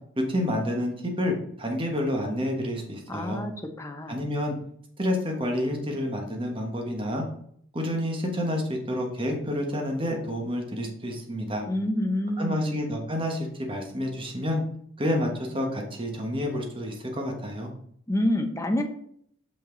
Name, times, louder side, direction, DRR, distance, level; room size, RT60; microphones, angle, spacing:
voice 1, 0.2-3.4 4.1-4.5 5.0-7.2 7.7-11.6 12.4-14.6 15.0-17.7, left 1 dB, 25° right, 1 dB, 1.3 m, -29 dB
voice 2, 3.1-3.5 3.8-4.2 11.7-12.8 18.1-18.8, left 1 dB, 15° left, 4 dB, 0.7 m, -27 dB
5.8 x 5.7 x 3.9 m, 0.66 s
head